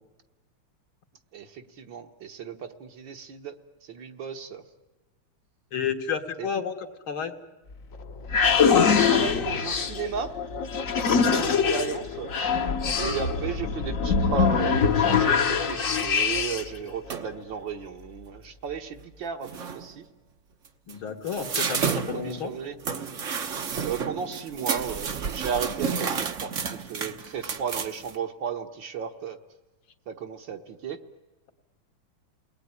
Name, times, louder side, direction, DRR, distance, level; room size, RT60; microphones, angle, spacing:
voice 1, 1.3-3.5 3.8-4.6 6.4-6.5 8.6-10.3 11.0-12.3 13.0-20.0 21.8-22.8 23.8-29.4 30.1-31.0, right 7 dB, 60° right, 5 dB, 1.9 m, -34 dB
voice 2, 5.7-7.3 11.3-11.4 20.9-22.5, left 7 dB, 70° left, 5 dB, 2.4 m, -31 dB
sound 1, 7.7-16.8, left 6 dB, 45° left, 1.3 m, -23 dB
sound 2, 17.1-17.4 19.0-19.1 19.4-19.9 20.7-28.1, right 6 dB, 45° right, 1.1 m, -31 dB
29.0 x 19.5 x 9.7 m, 1.2 s
omnidirectional pair, 2.4 m